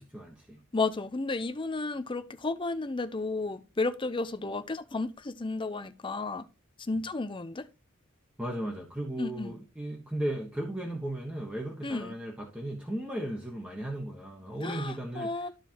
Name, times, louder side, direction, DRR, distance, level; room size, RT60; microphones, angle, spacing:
voice 1, 0.0-0.6 8.4-15.5, right 1 dB, 5° right, 1.3 m, -36 dB
voice 2, 0.7-6.4 6.9-7.7 9.2-9.5 11.8-12.1 14.6-15.5, left 3 dB, 25° left, 0.6 m, -32 dB
13.0 x 4.5 x 2.9 m
head